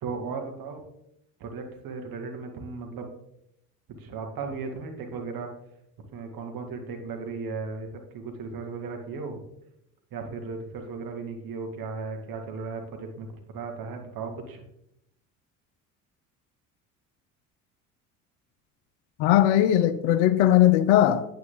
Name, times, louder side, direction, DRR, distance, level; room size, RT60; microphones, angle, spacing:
voice 1, 0.0-0.8 1.4-3.1 4.0-5.5 6.1-9.4 10.1-14.6, right 4 dB, 55° right, 2.2 m, -36 dB
voice 2, 19.2-21.3, left 12 dB, 65° left, 0.8 m, -19 dB
9.6 x 8.9 x 3.9 m
hypercardioid pair, 60°, 43 cm